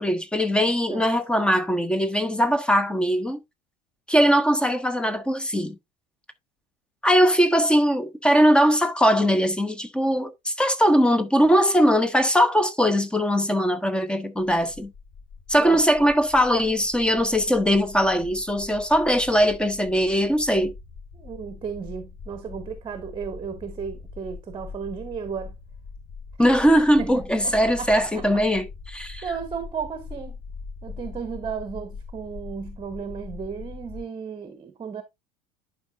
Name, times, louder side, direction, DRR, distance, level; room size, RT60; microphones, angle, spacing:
voice 1, 0.0-3.4 4.1-5.7 7.0-14.9 15.5-20.7 26.4-29.3, equal, 5° left, 0.9 m, -20 dB
sound 1, 14.4-34.0, left 4 dB, 60° left, 3.1 m, -42 dB
voice 2, 21.1-25.5 27.0-28.3 29.2-30.4 30.8-35.0, right 6 dB, 25° right, 1.0 m, -34 dB
11.0 x 4.9 x 2.5 m
figure-of-eight pair, 70°, 20 cm